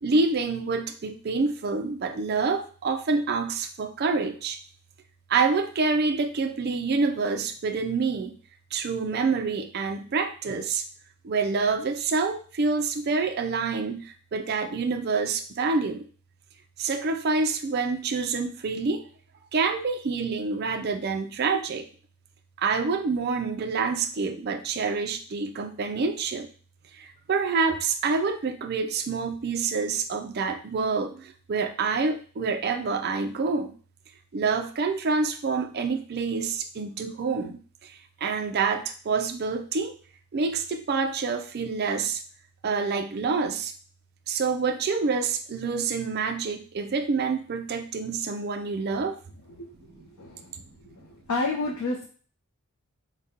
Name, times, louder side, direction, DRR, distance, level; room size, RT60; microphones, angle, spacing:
voice 1, 0.0-4.6 5.3-8.4 8.7-10.8 11.2-16.0 16.8-19.0 19.5-21.9 22.6-26.5 26.9-33.7 34.3-39.9 40.3-42.2 42.6-43.7 44.3-49.2 49.9-50.1 51.0-51.1, right 4 dB, 45° right, 6 dB, 0.4 m, -27 dB
voice 2, 51.0-52.1, left 3 dB, 85° left, -1 dB, 0.6 m, -29 dB
5.0 x 2.2 x 2.8 m, 0.41 s
head